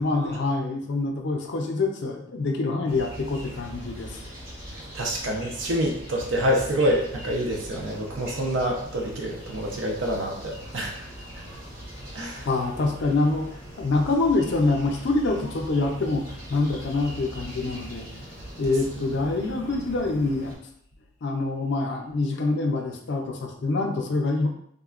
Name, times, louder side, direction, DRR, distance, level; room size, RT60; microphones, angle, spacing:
voice 1, 0.0-4.2 12.5-13.5 13.8-18.1 18.6-20.5 21.2-24.5, left 3 dB, 60° left, 3 dB, 0.5 m, -25 dB
sound 1, 2.9-20.6, equal, 50° right, 0.9 m, -41 dB
voice 2, 4.9-10.9 12.1-12.5, equal, 70° right, 0 dB, 0.5 m, -27 dB
3.5 x 2.1 x 2.4 m, 0.71 s
head